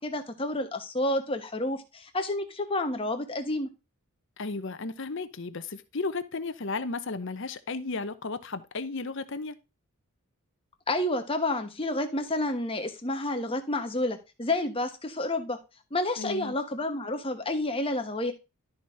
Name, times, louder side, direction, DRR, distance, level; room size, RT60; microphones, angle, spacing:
voice 1, 0.0-3.7 10.9-15.6 15.9-18.3, left 1 dB, 25° left, 1.2 m, -30 dB
voice 2, 4.4-9.6 16.2-16.6, left 3 dB, 55° left, 0.8 m, -34 dB
12.0 x 4.3 x 4.8 m
head